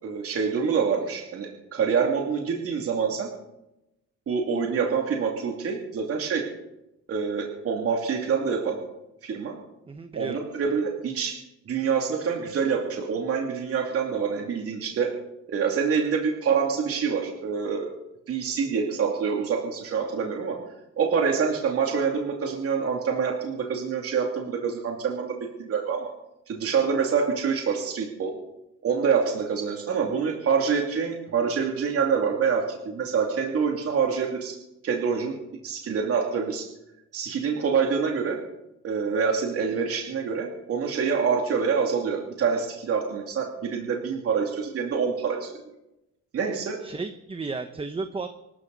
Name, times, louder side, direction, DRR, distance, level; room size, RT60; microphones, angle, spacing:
voice 1, 0.0-3.3 4.3-6.5 7.1-8.8 9.2-9.6 10.1-11.4 11.7-15.1 15.5-17.9 18.3-20.6 21.0-26.1 26.5-28.3 28.8-34.5 34.8-35.3 35.6-36.6 37.1-38.4 38.8-45.5 46.3-46.8, right 6 dB, 45° right, 1 dB, 2.6 m, -26 dB
voice 2, 9.9-10.4 46.8-48.3, right 4 dB, 15° right, 9 dB, 0.9 m, -33 dB
24.5 x 14.0 x 4.1 m, 0.93 s
cardioid pair, 120°, 32 cm